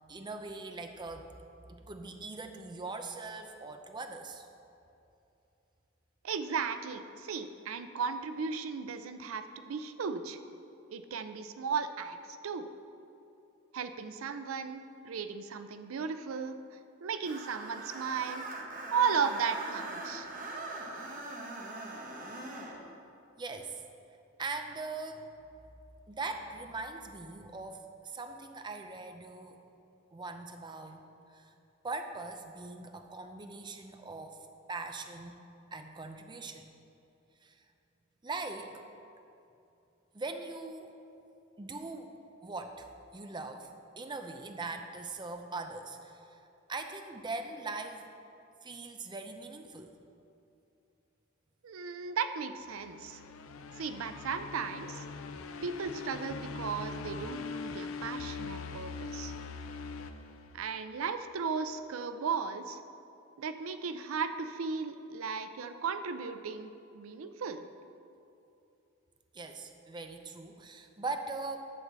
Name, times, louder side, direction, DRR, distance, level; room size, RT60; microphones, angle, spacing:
voice 1, 0.1-1.3 1.7-4.5 23.4-23.9 24.4-25.3 26.1-29.6 30.1-31.0 31.3-31.5 31.8-34.4 34.7-35.4 35.7-36.7 37.4-37.6 38.2-38.7 40.1-40.9 41.6-42.1 42.4-43.7 44.0-46.2 46.7-48.1 48.6-49.9 69.3-71.6, right 3 dB, 20° right, 6 dB, 0.5 m, -41 dB
voice 2, 6.2-10.4 10.9-12.2 12.4-12.7 13.7-16.6 17.0-18.5 18.9-20.3 51.6-53.2 53.7-55.0 55.6-59.3 60.5-62.8 63.4-67.6, right 5 dB, 90° right, 10 dB, 0.5 m, -35 dB
Screech, 17.2-22.8, right 2 dB, 40° right, 1.1 m, -42 dB
sound 1, 52.7-61.0, left 4 dB, 80° left, 0.5 m, -42 dB
11.0 x 4.0 x 7.4 m, 2.7 s
head